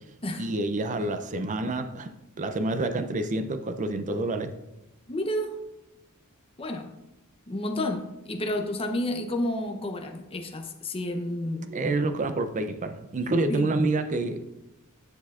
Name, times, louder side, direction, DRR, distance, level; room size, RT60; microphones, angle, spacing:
voice 1, 0.4-2.1 2.4-4.6 11.7-14.4, right 2 dB, 35° right, 9 dB, 0.4 m, -28 dB
voice 2, 5.1-5.6 6.6-6.9 7.5-11.7 13.5-13.7, left 1 dB, 25° left, 4 dB, 0.7 m, -30 dB
9.7 x 6.1 x 2.4 m, 0.91 s
head